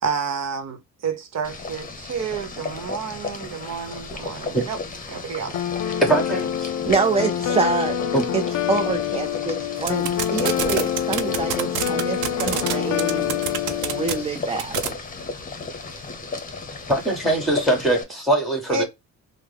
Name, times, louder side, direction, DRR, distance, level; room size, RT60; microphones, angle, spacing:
voice 1, 0.0-4.8 5.1-5.6 18.7-18.8, right 5 dB, 60° right, 1.0 m, -30 dB
Boiling, 1.4-18.0, left 4 dB, 25° left, 1.0 m, -34 dB
sound 1, 5.5-14.2, left 10 dB, 70° left, 0.5 m, -26 dB
voice 2, 6.0-6.7 8.1-8.3 16.9-18.8, right 1 dB, ahead, 1.7 m, -21 dB
voice 3, 6.8-8.0 8.3-8.4 8.7-13.4 13.8-14.8, right 4 dB, 20° right, 0.5 m, -26 dB
sound 2, 9.8-12.7 13.0-14.1 14.6-14.9, right 10 dB, 85° right, 0.7 m, -25 dB
3.4 x 2.1 x 3.4 m
cardioid pair, 90°, 30 cm